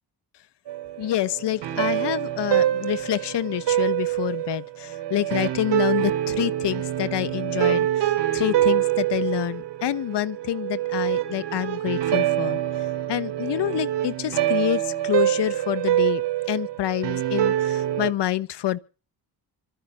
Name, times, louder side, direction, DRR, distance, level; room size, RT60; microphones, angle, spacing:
sound 1, 0.7-18.1, right 12 dB, 85° right, 3.2 m, -25 dB
voice 1, 1.0-16.2 16.5-18.8, left 13 dB, 75° left, 1.2 m, -27 dB
26.5 x 9.6 x 4.2 m
cardioid pair, 95°, 41 cm